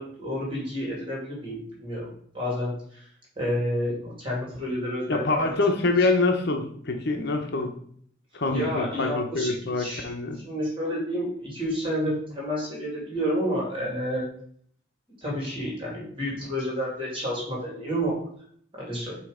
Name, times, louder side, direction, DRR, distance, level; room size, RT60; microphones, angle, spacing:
voice 1, 0.0-2.1 2.3-3.0 3.4-5.5 8.5-14.3 15.2-18.2 18.8-19.2, equal, 25° right, -4 dB, 2.6 m, -30 dB
voice 2, 5.1-7.7 8.3-10.4, left 3 dB, 55° left, 5 dB, 1.0 m, -25 dB
7.5 x 3.1 x 5.1 m, 0.62 s
head